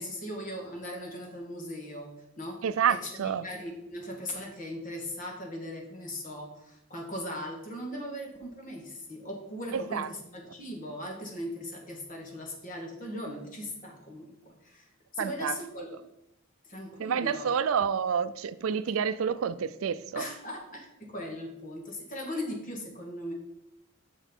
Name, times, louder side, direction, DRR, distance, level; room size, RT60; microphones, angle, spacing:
voice 1, 0.0-2.6 3.2-14.8 15.1-16.0 16.7-17.5 18.9-19.0 20.2-23.3, left 1 dB, 40° left, 1.8 m, -39 dB
voice 2, 2.6-3.5 9.7-10.1 15.2-15.6 17.0-20.3, right 7 dB, 90° right, 0.4 m, -29 dB
6.3 x 6.1 x 4.5 m
head